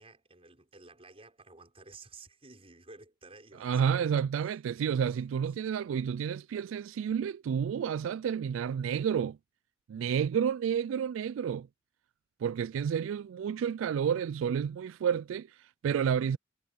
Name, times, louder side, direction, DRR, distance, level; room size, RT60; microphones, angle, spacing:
voice 1, 0.0-4.6 5.1-5.2, right 3 dB, 30° right, 6.2 m, -53 dB
voice 2, 3.6-9.4 9.9-11.7 12.4-16.4, right 7 dB, 85° right, 0.3 m, -30 dB
head